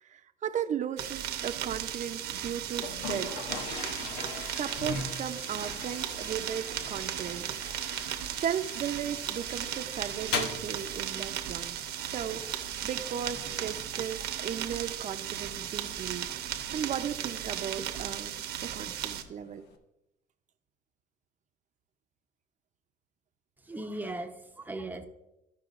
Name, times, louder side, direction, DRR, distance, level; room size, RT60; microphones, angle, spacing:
voice 1, 0.0-3.4 4.4-7.5 8.0-11.8 12.0-16.3 16.7-19.6, right 8 dB, 45° right, 8 dB, 0.7 m, -36 dB
sound 1, 1.0-19.2, right 10 dB, 75° right, 0.9 m, -36 dB
Toilet flush, 2.7-19.8, left 5 dB, 85° left, 0.9 m, -43 dB
voice 2, 23.6-25.0, right 2 dB, 10° right, 5 dB, 0.8 m, -38 dB
15.0 x 5.6 x 2.5 m, 0.90 s
cardioid pair, 110°, 17 cm